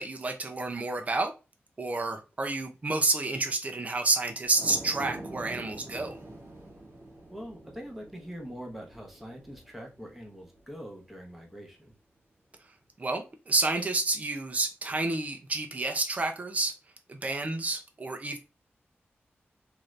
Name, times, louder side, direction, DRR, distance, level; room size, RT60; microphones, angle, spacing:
voice 1, 0.0-1.3 1.8-6.2 13.0-16.7 17.1-18.4, right 3 dB, 35° right, 0.5 m, -29 dB
sound 1, 4.4-11.0 11.4-11.5, right 2 dB, 65° right, 1.2 m, -45 dB
voice 2, 7.3-11.9, equal, ahead, 0.9 m, -43 dB
2.8 x 2.5 x 3.1 m
wide cardioid pair, 85°, 4 cm